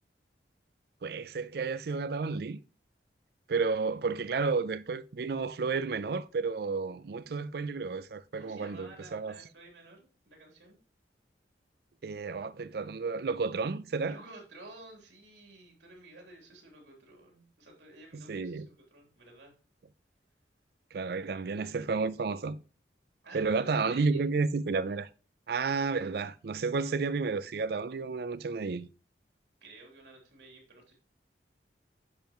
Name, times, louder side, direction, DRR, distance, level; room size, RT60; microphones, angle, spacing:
voice 1, 1.0-2.6 3.5-9.4 12.0-14.2 18.1-18.7 20.9-22.6 23.3-25.1 25.5-28.9, right 4 dB, 60° right, 0.4 m, -31 dB
voice 2, 8.4-10.8 14.0-19.5 21.2-21.3 23.2-24.3 29.6-31.0, right 2 dB, 90° right, 3.4 m, -52 dB
10.5 x 6.8 x 3.0 m
head